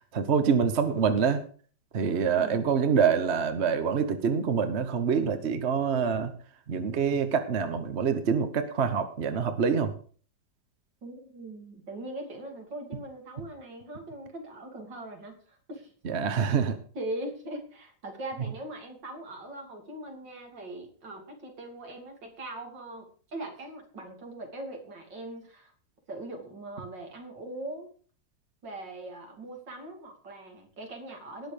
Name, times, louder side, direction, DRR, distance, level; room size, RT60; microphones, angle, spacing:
voice 1, 0.1-1.4 1.9-6.3 6.7-9.9 16.0-16.8, right 6 dB, 45° right, 10 dB, 1.2 m, -26 dB
voice 2, 2.4-2.8 11.0-15.9 16.9-25.7 26.1-27.9 28.6-31.5, right 1 dB, 75° right, 3 dB, 3.4 m, -41 dB
18.5 x 6.3 x 5.1 m, 0.43 s
omnidirectional pair, 2.0 m